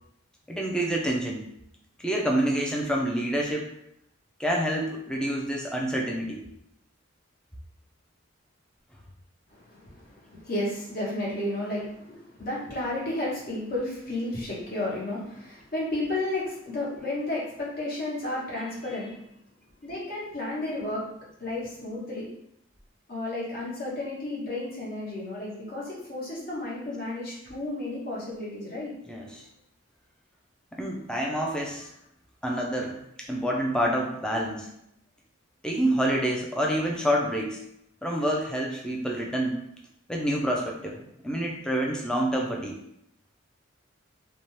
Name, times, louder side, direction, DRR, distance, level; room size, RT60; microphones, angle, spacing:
voice 1, 0.5-1.5 2.0-3.7 4.4-6.5 29.1-29.4 30.7-31.9 32.4-34.7 35.6-37.6 38.0-39.6 40.1-42.8, right 1 dB, 5° left, -1 dB, 0.4 m, -28 dB
voice 2, 9.5-19.2 19.8-22.3 23.1-28.9, left 1 dB, 50° left, -5 dB, 1.0 m, -32 dB
2.7 x 2.2 x 3.1 m, 0.77 s
head